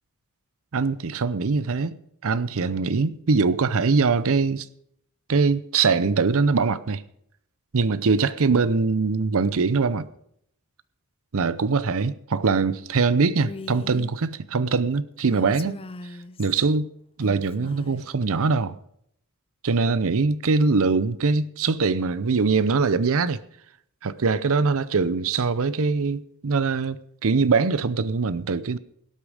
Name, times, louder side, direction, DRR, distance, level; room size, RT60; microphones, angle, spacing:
voice 1, 0.7-4.7 5.3-7.0 7.7-10.1 11.3-15.8 16.4-16.9 17.2-18.8 19.6-23.4 24.0-28.8, right 4 dB, 65° right, 0.6 m, -22 dB
Female speech woman speaking, 13.4-14.1 15.2-16.7 17.2-18.1, left 3 dB, 25° left, 0.5 m, -40 dB
18.0 x 8.4 x 5.0 m
head